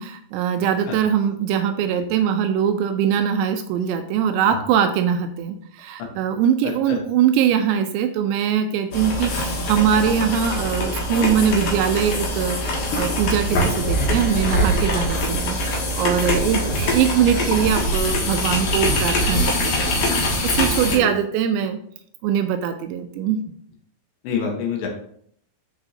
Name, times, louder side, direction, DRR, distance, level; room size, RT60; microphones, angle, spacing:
voice 1, 0.0-20.1 20.4-21.8 22.2-23.4, right 8 dB, 85° right, 7 dB, 2.8 m, -22 dB
sound 1, 8.9-21.0, left 1 dB, 60° left, 2.6 m, -23 dB
voice 2, 24.2-24.9, left 6 dB, 85° left, 0 dB, 3.8 m, -27 dB
13.0 x 4.8 x 2.7 m, 0.65 s
omnidirectional pair, 5.1 m